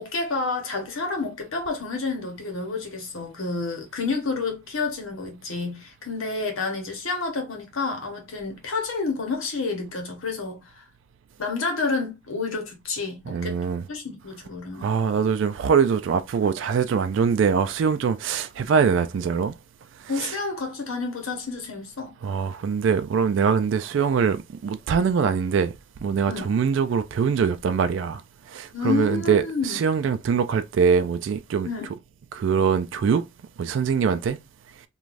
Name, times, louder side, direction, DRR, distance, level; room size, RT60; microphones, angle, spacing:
voice 1, 0.0-10.8 11.4-13.6 13.9-14.9 20.1-22.1 26.3-26.5 28.7-29.8 31.6-31.9, left 4 dB, 85° left, 1.0 m, -29 dB
voice 2, 13.3-13.8 14.8-19.5 20.0-20.4 22.2-25.7 26.0-31.7 32.3-33.2 33.6-34.4, right 6 dB, 65° right, 0.3 m, -23 dB
3.2 x 2.3 x 2.5 m
head